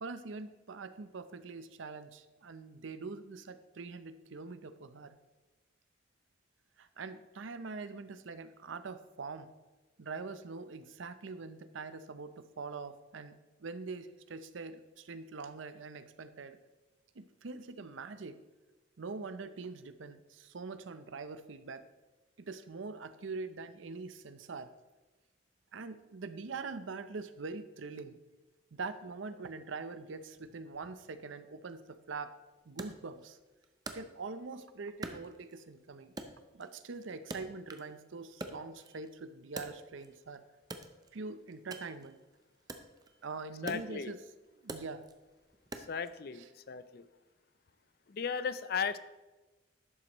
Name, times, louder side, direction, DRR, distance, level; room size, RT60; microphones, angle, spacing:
voice 1, 0.0-5.2 6.8-9.5 10.0-16.6 17.1-18.4 19.0-21.9 22.4-24.7 25.7-28.2 28.7-32.4 32.7-33.4 33.9-36.1 36.5-40.4 41.1-42.2 43.2-44.2 44.6-45.0 46.3-46.5, right 4 dB, 80° right, 11 dB, 0.6 m, -43 dB
Wood, 32.8-34.6 35.0-35.8 36.2-38.0 38.3-40.2 40.6-46.2, right 2 dB, 20° right, 0.5 m, -46 dB
voice 2, 43.6-44.1 45.9-47.0 48.1-49.0, left 6 dB, 50° left, 14 dB, 0.4 m, -36 dB
11.0 x 7.7 x 3.0 m, 1.1 s
head